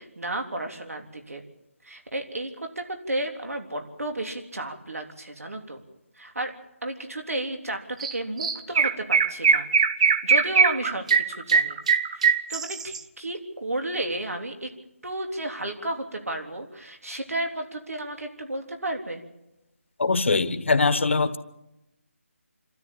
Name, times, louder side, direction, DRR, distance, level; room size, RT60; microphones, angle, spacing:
voice 1, 0.0-1.4 1.8-5.8 6.2-6.5 6.8-9.7 10.2-11.8 12.1-14.7 15.0-19.2, right 1 dB, 90° right, 3.5 m, -32 dB
Chirp tweet, 8.0-8.1 8.4-13.0, right 6 dB, 25° right, 0.7 m, -21 dB
voice 2, 20.0-21.4, left 3 dB, 55° left, 1.4 m, -22 dB
26.5 x 13.0 x 8.8 m
figure-of-eight pair, 170°, 8 cm